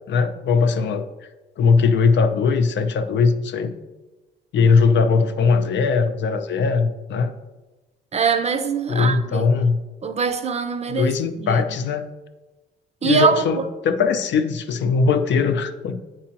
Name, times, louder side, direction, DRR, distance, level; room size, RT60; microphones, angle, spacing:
voice 1, 0.1-1.0 1.6-3.7 4.5-7.3 8.9-9.8 10.9-12.1 13.0-16.0, left 5 dB, 65° left, 0.6 m, -20 dB
voice 2, 8.1-9.5 10.0-11.1 11.4-11.6 13.0-13.4, right 5 dB, 35° right, 0.6 m, -22 dB
8.6 x 4.7 x 2.9 m
cardioid pair, 90°, 20 cm